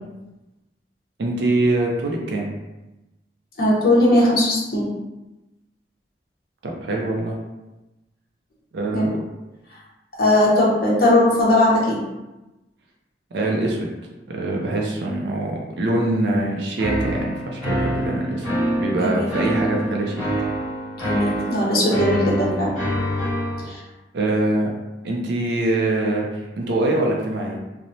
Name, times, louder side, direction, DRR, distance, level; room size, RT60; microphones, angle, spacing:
voice 1, 1.2-2.5 6.6-7.4 8.7-9.2 13.3-13.9 14.3-18.5 18.8-20.2 24.1-24.7 25.0-27.6, right 2 dB, 65° right, -1 dB, 0.4 m, -23 dB
voice 2, 3.6-4.8 8.9-9.0 10.2-12.0 19.0-19.3 21.0-22.7 23.6-23.8, left 1 dB, 55° left, -5 dB, 0.8 m, -18 dB
sound 1, 16.8-23.6, equal, 5° left, 1.5 m, -26 dB
2.9 x 2.0 x 2.6 m, 1.0 s
head